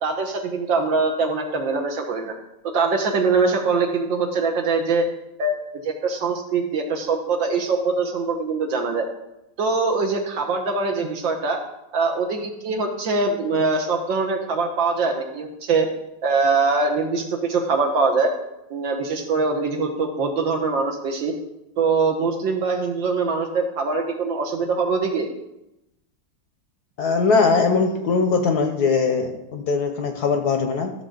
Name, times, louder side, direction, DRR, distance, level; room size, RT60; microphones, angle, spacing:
voice 1, 0.0-2.3 2.7-5.0 5.4-9.1 9.6-11.6 11.9-15.9 16.2-18.3 18.7-21.3 21.8-25.3, right 4 dB, 70° right, 2 dB, 1.9 m, -23 dB
voice 2, 27.0-30.9, left 4 dB, 60° left, 5 dB, 1.2 m, -21 dB
14.0 x 6.8 x 3.9 m, 0.91 s
omnidirectional pair, 2.2 m